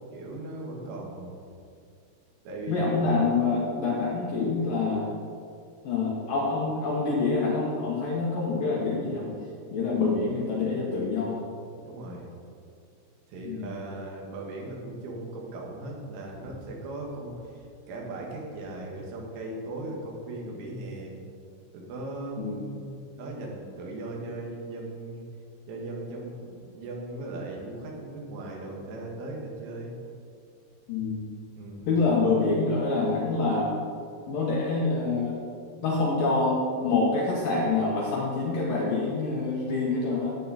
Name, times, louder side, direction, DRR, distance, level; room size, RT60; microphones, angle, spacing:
voice 1, 0.1-1.4 2.5-3.0 9.9-10.1 11.8-12.3 13.3-21.2 21.7-22.9 23.2-25.3 25.7-30.0 31.6-31.9, right 2 dB, 85° right, -2 dB, 4.4 m, -38 dB
voice 2, 2.7-5.1 5.8-9.3 9.7-11.4 13.5-13.7 22.4-22.7 30.9-31.2 31.9-33.8 34.3-35.4 35.8-40.4, left 3 dB, 65° left, -4 dB, 2.3 m, -26 dB
13.5 x 9.2 x 4.2 m, 2.4 s
omnidirectional pair, 5.4 m